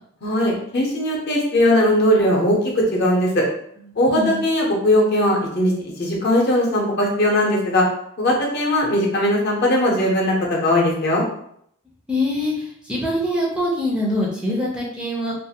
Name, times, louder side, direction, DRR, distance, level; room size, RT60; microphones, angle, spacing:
voice 1, 0.2-3.4 4.0-5.7 6.0-7.9 8.2-11.2, left 1 dB, 50° left, -2 dB, 0.7 m, -19 dB
voice 2, 4.1-4.5 12.1-15.3, left 1 dB, 5° right, -4 dB, 0.4 m, -24 dB
2.5 x 2.4 x 2.7 m, 0.69 s
head